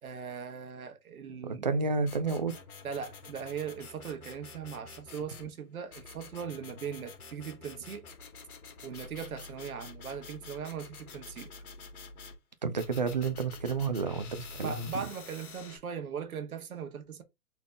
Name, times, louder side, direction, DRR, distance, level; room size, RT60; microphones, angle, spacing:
voice 1, 0.0-1.7 2.8-8.0 8.8-11.5 14.5-17.2, right 7 dB, 65° right, 1.4 m, -39 dB
voice 2, 1.4-2.5 12.6-15.1, right 4 dB, 30° right, 0.4 m, -31 dB
sound 1, 2.1-5.5 5.9-12.4 12.8-15.8, left 4 dB, 65° left, 1.9 m, -48 dB
4.2 x 3.4 x 3.5 m
hypercardioid pair, 145°, 47 cm